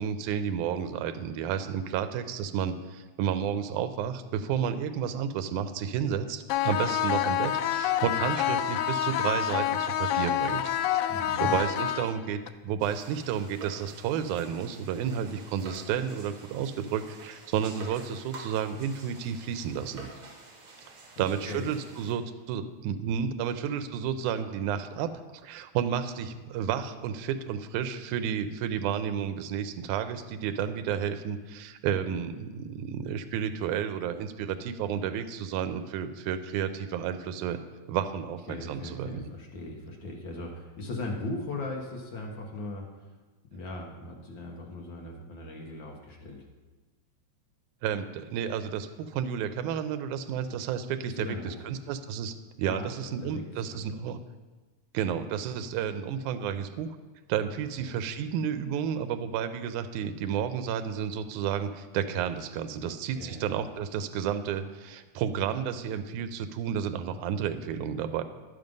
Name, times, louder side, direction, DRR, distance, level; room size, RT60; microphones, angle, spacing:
voice 1, 0.0-20.1 21.2-37.6 37.9-39.3 47.8-54.2 54.9-56.9 57.3-68.2, right 8 dB, 85° right, 9 dB, 2.1 m, -31 dB
sound 1, 6.5-12.5, left 10 dB, 90° left, 1.4 m, -27 dB
voice 2, 11.1-11.5 21.2-21.7 23.0-23.2 38.5-42.9 43.5-46.5 51.0-51.6 52.7-53.8 62.7-63.5, left 2 dB, 55° left, 0 dB, 1.3 m, -39 dB
sound 2, 12.8-22.1, right 3 dB, 50° right, 2.1 m, -48 dB
11.0 x 7.5 x 5.3 m, 1.2 s
omnidirectional pair, 3.5 m